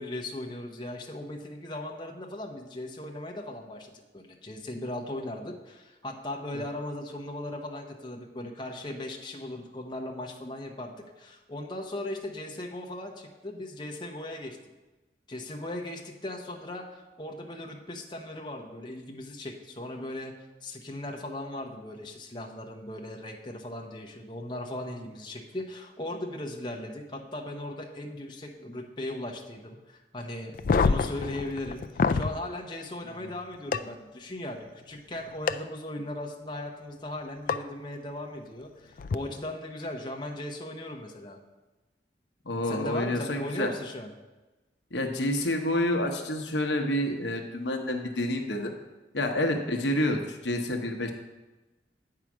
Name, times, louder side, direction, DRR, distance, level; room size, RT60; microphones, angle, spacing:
voice 1, 0.0-14.6 15.3-41.4 42.6-44.1, left 1 dB, 25° left, 1 dB, 0.9 m, -38 dB
sound 1, 30.5-32.3 33.7-33.8 35.5-35.6 37.5-37.6 39.0-39.1, left 4 dB, 50° left, 0.3 m, -25 dB
voice 2, 42.4-43.7 44.9-48.7 49.1-51.1, left 1 dB, 75° left, 4 dB, 1.0 m, -28 dB
8.8 x 4.8 x 6.1 m, 1.1 s
head